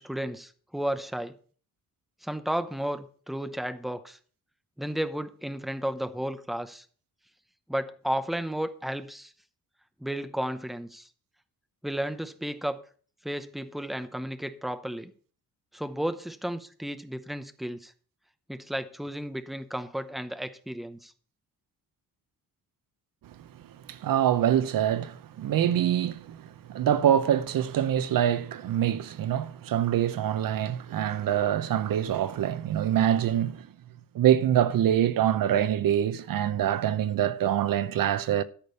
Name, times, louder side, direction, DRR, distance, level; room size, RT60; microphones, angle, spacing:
voice 1, 0.0-1.3 2.2-4.2 4.8-6.8 7.7-9.3 10.0-11.1 11.8-12.8 13.2-15.1 15.7-17.9 18.5-21.1, right 1 dB, ahead, 0.7 m, -33 dB
voice 2, 23.9-33.7 34.1-38.4, right 10 dB, 65° right, 0.8 m, -25 dB
13.0 x 5.1 x 6.9 m
wide cardioid pair, 155°, 36 cm